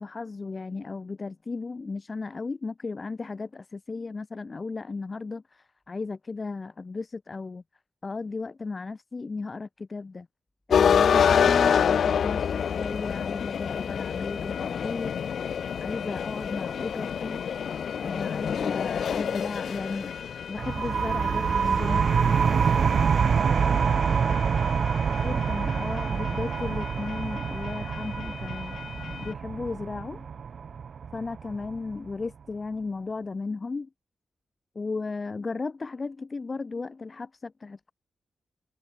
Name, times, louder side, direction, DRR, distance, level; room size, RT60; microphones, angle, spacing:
voice 1, 0.0-7.6 8.0-10.3 10.7-15.1 15.8-17.4 18.0-20.1 20.5-22.1 25.2-28.8 29.2-30.3 31.1-33.9 34.7-37.9, left 4 dB, 25° left, 1.2 m, -35 dB
sound 1, 10.7-29.3, left 7 dB, 65° left, 0.3 m, -29 dB
sound 2, 20.6-31.9, right 6 dB, 50° right, 0.5 m, -26 dB
voice 2, 21.6-24.9, left 1 dB, 10° left, 7.0 m, -50 dB
wide cardioid pair, 180°, 0 cm